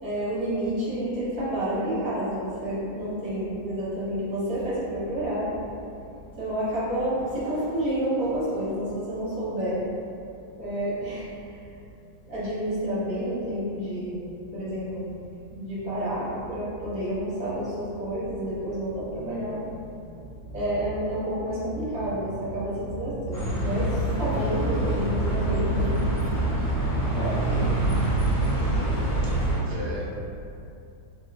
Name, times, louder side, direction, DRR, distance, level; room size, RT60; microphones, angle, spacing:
voice 1, 0.0-5.7 6.4-9.9 10.6-11.8 12.2-15.2 15.5-19.9 20.1-29.2, right 1 dB, 55° right, -10 dB, 1.6 m, -30 dB
Bus, 23.3-29.6, right 2 dB, 70° left, 2.4 m, -25 dB
voice 2, 29.2-30.2, equal, 75° right, -5 dB, 1.1 m, -39 dB
4.2 x 3.0 x 2.3 m, 2.6 s
omnidirectional pair, 2.1 m